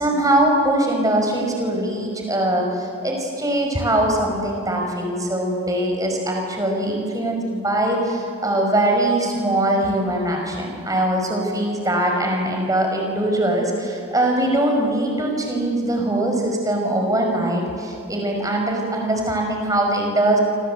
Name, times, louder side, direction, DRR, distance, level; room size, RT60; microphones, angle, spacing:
voice 1, 0.0-20.4, right 1 dB, 15° right, 2 dB, 5.5 m, -22 dB
27.0 x 27.0 x 8.2 m, 2.6 s
head